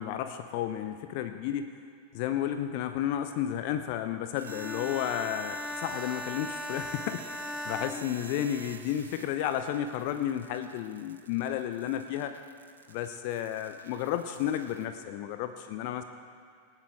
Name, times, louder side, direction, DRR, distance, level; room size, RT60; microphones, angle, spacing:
voice 1, 0.0-1.8 2.1-12.3 12.9-16.0, left 10 dB, 45° left, 8 dB, 0.8 m, -32 dB
Bowed string instrument, 4.4-8.9, left 2 dB, 5° left, 0.3 m, -39 dB
sound 1, 4.4-14.9, right 6 dB, 70° right, 0.9 m, -48 dB
25.0 x 9.1 x 3.8 m, 2.3 s
figure-of-eight pair, 90°, 0 cm